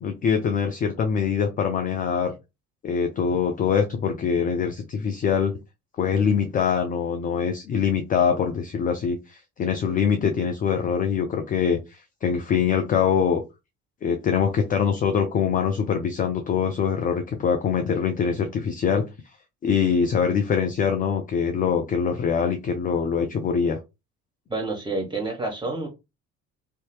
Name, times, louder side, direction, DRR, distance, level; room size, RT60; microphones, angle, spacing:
voice 1, 0.0-2.3 2.8-5.5 6.0-13.4 14.0-19.1 19.6-23.8, left 7 dB, 20° left, 5 dB, 0.3 m, -23 dB
voice 2, 24.5-25.9, right 2 dB, 10° right, 2 dB, 1.2 m, -28 dB
2.7 x 2.2 x 3.0 m, 0.24 s
figure-of-eight pair, 50°, 44 cm